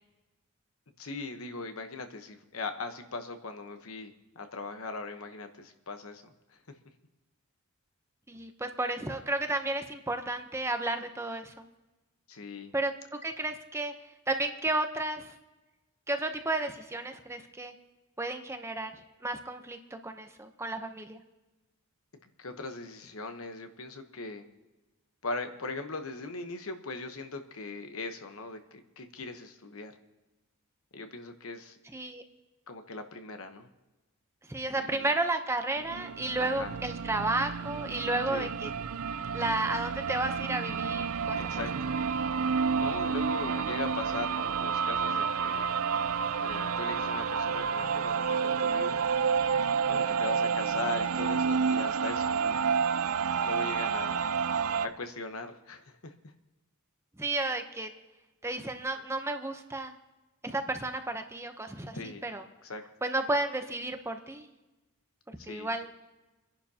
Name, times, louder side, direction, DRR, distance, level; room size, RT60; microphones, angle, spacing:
voice 1, 1.0-6.3 12.3-12.7 22.4-24.5 25.2-29.9 30.9-31.8 32.7-33.7 34.7-35.1 36.4-36.8 38.3-38.5 41.4-42.0 42.8-45.7 46.4-49.0 49.8-52.6 53.1-54.2 54.8-56.1 61.9-62.2 62.6-62.8 65.4-65.7, left 3 dB, 70° left, 6 dB, 1.1 m, -39 dB
voice 2, 8.3-11.6 12.7-12.9 13.2-13.9 14.3-15.3 16.1-17.7 18.2-18.9 19.2-21.2 31.9-32.2 34.5-38.7 39.3-41.6 57.2-57.9 58.4-59.9 60.4-62.0 62.2-62.4 63.0-64.5 65.5-65.9, right 2 dB, 10° right, 6 dB, 0.8 m, -32 dB
sound 1, 35.8-54.9, right 6 dB, 75° right, 0.5 m, -30 dB
27.5 x 11.0 x 2.9 m, 1.1 s
head